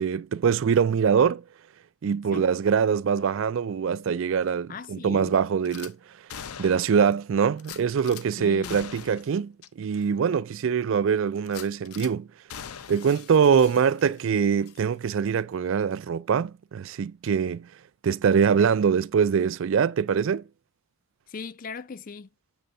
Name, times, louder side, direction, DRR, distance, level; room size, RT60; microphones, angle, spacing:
voice 1, 0.0-1.4 2.0-6.0 6.6-12.3 12.9-17.7 18.0-20.4, right 6 dB, 60° right, 0.3 m, -23 dB
voice 2, 4.7-5.4 8.4-8.8 21.3-22.3, left 4 dB, 40° left, 0.4 m, -38 dB
Gunshot gunfire / Glass, 5.7-5.9 6.3-7.1 7.6-8.2 8.6-9.3 9.6-9.7 10.2-10.3 11.4-12.1 12.5-14.3 14.6-14.8, left 8 dB, 85° left, 0.6 m, -42 dB
7.9 x 3.7 x 5.3 m
head